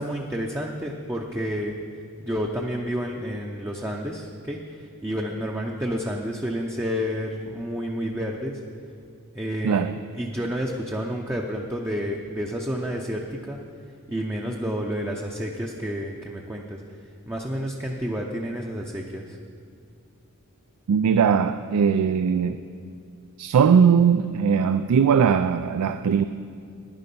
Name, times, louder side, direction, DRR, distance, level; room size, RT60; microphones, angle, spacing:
voice 1, 0.0-1.7 2.2-8.6 9.3-9.9 10.1-13.6 14.1-17.0 17.3-19.4, equal, 10° right, 0.6 m, -30 dB
voice 2, 9.6-10.0 20.9-22.6 23.4-26.2, right 7 dB, 85° right, 0.4 m, -20 dB
11.0 x 10.0 x 5.4 m
head